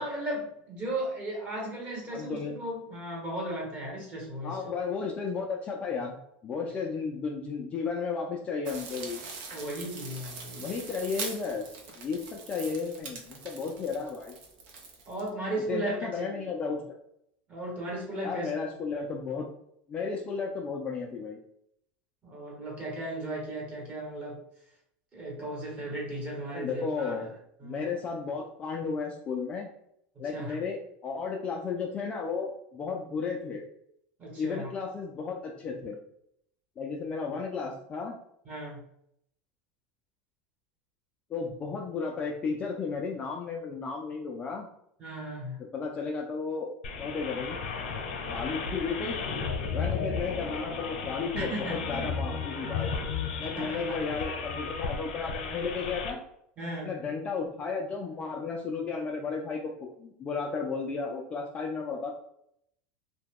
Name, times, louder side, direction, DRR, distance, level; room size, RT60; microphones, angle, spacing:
voice 1, 0.0-4.6 9.5-10.7 15.1-16.5 17.5-18.5 22.2-24.4 25.1-27.3 27.6-27.8 30.1-30.6 34.2-34.7 38.4-38.8 45.0-45.6 51.4-52.0 53.5-54.0 56.6-56.9, right 1 dB, 25° right, -2 dB, 1.2 m, -36 dB
voice 2, 2.1-2.5 4.4-6.2 6.4-9.2 10.6-14.3 15.7-16.8 18.2-19.5 19.9-21.4 26.5-27.3 27.6-29.7 30.2-33.6 34.4-36.0 36.8-38.2 41.3-44.7 45.7-46.7 47.0-47.6 48.3-49.2 49.7-52.9 53.4-56.2 56.8-59.6 60.0-62.1, left 5 dB, 20° left, 0 dB, 0.4 m, -33 dB
sound 1, 8.6-15.3, right 4 dB, 60° right, 0.8 m, -42 dB
sound 2, 46.8-56.1, left 5 dB, 85° left, 0.8 m, -34 dB
2.8 x 2.3 x 3.6 m, 0.73 s
supercardioid pair, 155°, 6 cm